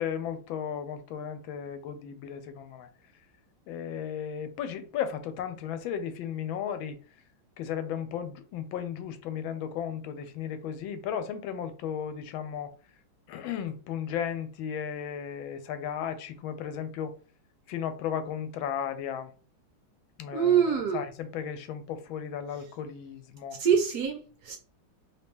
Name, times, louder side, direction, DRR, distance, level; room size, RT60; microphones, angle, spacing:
voice 1, 0.0-2.9 3.7-7.0 7.6-12.7 13.3-17.1 17.7-19.3 20.2-23.6, left 8 dB, 90° left, 1.4 m, -35 dB
voice 2, 20.3-21.0 23.6-24.6, right 8 dB, 70° right, 1.0 m, -25 dB
3.1 x 2.9 x 3.4 m
omnidirectional pair, 2.1 m